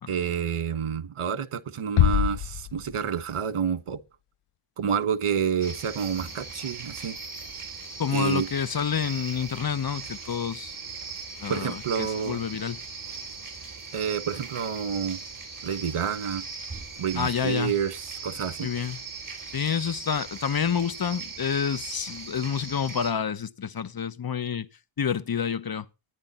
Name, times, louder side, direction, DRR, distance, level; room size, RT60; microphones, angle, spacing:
voice 1, 0.1-4.0 4.8-7.2 8.1-8.5 11.5-12.4 13.9-15.2 15.6-16.4 17.0-18.7, right 7 dB, 85° right, 1.5 m, -29 dB
sound 1, 2.0-3.6, left 12 dB, 90° left, 0.7 m, -25 dB
sound 2, 5.6-23.1, right 4 dB, 40° right, 4.6 m, -39 dB
voice 2, 8.0-10.7 11.4-12.8 17.2-17.7 18.6-19.0 19.5-24.7 25.0-25.8, left 7 dB, 45° left, 1.0 m, -28 dB
14.0 x 10.0 x 4.3 m
wide cardioid pair, 75°, 50 cm